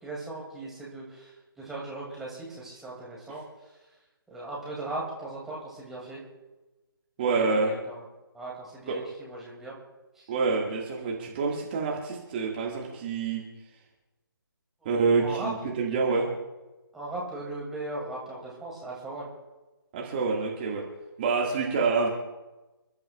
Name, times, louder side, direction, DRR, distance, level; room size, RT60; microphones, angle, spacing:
voice 1, 0.0-1.3 1.6-3.4 4.3-6.2 7.3-8.0 8.3-9.8 10.2-10.3 14.9-15.5 16.9-19.3, right 2 dB, 5° right, -5 dB, 2.5 m, -38 dB
voice 2, 7.2-7.7 8.9-9.0 10.3-13.4 14.9-16.3 19.9-20.8 21.2-22.1, right 4 dB, 25° right, -2 dB, 1.9 m, -27 dB
29.0 x 12.0 x 2.4 m, 1.1 s
figure-of-eight pair, 145°, 13 cm